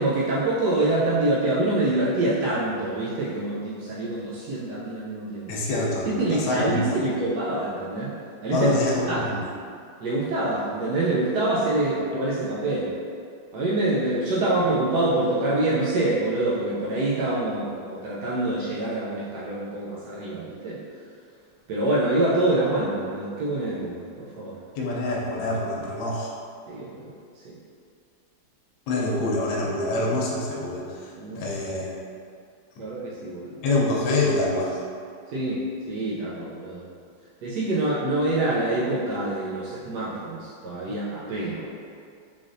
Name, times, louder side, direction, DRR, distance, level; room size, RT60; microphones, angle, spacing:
voice 1, 0.0-5.6 6.1-8.1 8.4-8.7 9.1-9.3 10.0-12.9 13.5-20.8 21.7-24.6 26.7-27.1 27.4-27.6 31.2-31.4 32.8-33.5 35.3-36.9 37.4-41.7, right 2 dB, 70° right, -8 dB, 1.1 m, -26 dB
voice 2, 5.5-6.8 8.5-9.4 24.8-26.3 28.9-31.1 31.4-31.9 32.8-32.9 33.6-34.8, left 2 dB, 75° left, -4 dB, 1.4 m, -25 dB
3.8 x 3.3 x 2.5 m, 2.2 s
omnidirectional pair, 2.1 m